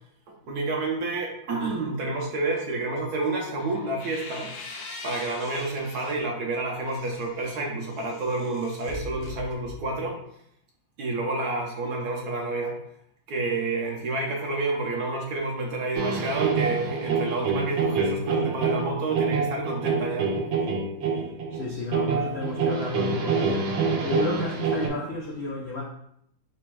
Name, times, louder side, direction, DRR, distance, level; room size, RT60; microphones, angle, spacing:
voice 1, 0.3-4.5 5.0-10.2 11.0-12.8 13.3-20.3, right 2 dB, 65° right, 0 dB, 1.1 m, -29 dB
sound 1, 3.6-6.3 6.7-10.1, left 3 dB, 70° left, 1.3 m, -42 dB
sound 2, 16.0-24.9, right 5 dB, 90° right, 1.4 m, -26 dB
voice 2, 21.5-25.8, left 3 dB, 90° left, -3 dB, 0.5 m, -32 dB
4.1 x 2.2 x 4.5 m, 0.72 s
omnidirectional pair, 2.0 m